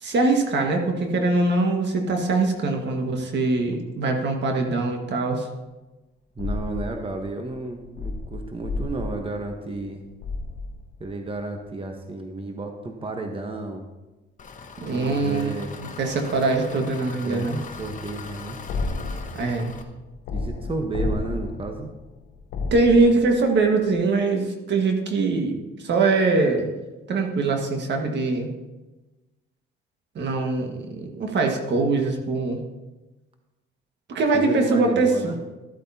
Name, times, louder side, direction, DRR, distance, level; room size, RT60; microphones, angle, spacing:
voice 1, 0.0-5.5 14.8-15.5 15.8-17.6 19.3-19.7 22.7-26.7 27.1-28.5 30.1-32.6 34.1-35.3, right 3 dB, 65° right, 3 dB, 1.6 m, -22 dB
sound 1, 6.4-11.4 18.7-23.6 23.9-24.0, left 3 dB, 85° left, 0.8 m, -32 dB
voice 2, 6.4-10.0 11.0-13.8 14.9-15.7 17.2-17.5 17.8-18.6 20.3-21.9 34.3-35.4, right 3 dB, 25° right, 4 dB, 1.1 m, -32 dB
Engine, 14.4-19.8, left 5 dB, 40° left, 1.1 m, -40 dB
13.5 x 8.5 x 2.8 m, 1.1 s
cardioid pair, 90°, 20 cm